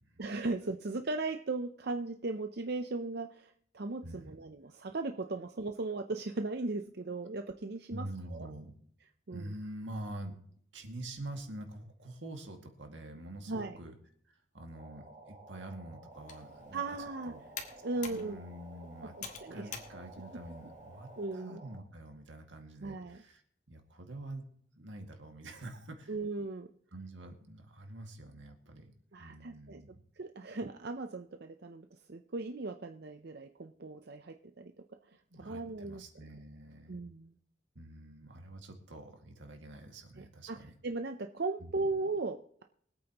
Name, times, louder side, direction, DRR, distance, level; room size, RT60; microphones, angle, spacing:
voice 1, 0.2-8.1 8.3-8.5 9.3-9.5 13.5-13.7 16.7-17.3 17.8-18.4 19.2-19.7 21.2-21.6 22.8-23.2 26.1-26.7 29.1-29.8 30.2-34.7 35.4-36.0 36.9-37.3 40.2-40.6 40.8-42.6, right 3 dB, 60° right, 6 dB, 0.6 m, -37 dB
voice 2, 4.0-4.4 7.9-8.7 9.3-10.4 10.7-13.9 14.3-17.4 18.0-23.4 23.7-24.4 24.8-26.2 26.9-28.9 29.2-30.0 35.3-37.0 37.8-40.7 41.6-41.9, right 1 dB, 85° right, 4 dB, 2.1 m, -46 dB
sound 1, 14.7-21.8, right 2 dB, 35° right, 3.1 m, -53 dB
Computer keyboard, 16.1-21.3, left 6 dB, 40° left, 1.7 m, -49 dB
24.0 x 8.7 x 3.0 m, 0.62 s
head